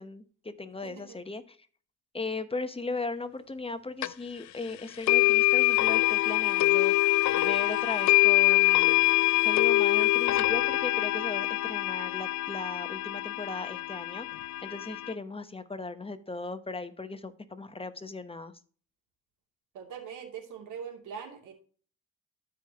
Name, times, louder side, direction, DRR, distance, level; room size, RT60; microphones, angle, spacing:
voice 1, 0.0-1.6 2.1-6.9 7.4-9.0 9.4-14.3 14.6-18.5, left 3 dB, 20° left, 10 dB, 0.9 m, -37 dB
voice 2, 0.8-1.2 19.7-21.5, right 7 dB, 90° right, 1 dB, 2.6 m, -42 dB
sound 1, 4.0-4.1 5.1-15.1, left 19 dB, 70° left, 0.5 m, -24 dB
13.0 x 5.0 x 2.9 m, 0.43 s
cardioid pair, 90°, 30 cm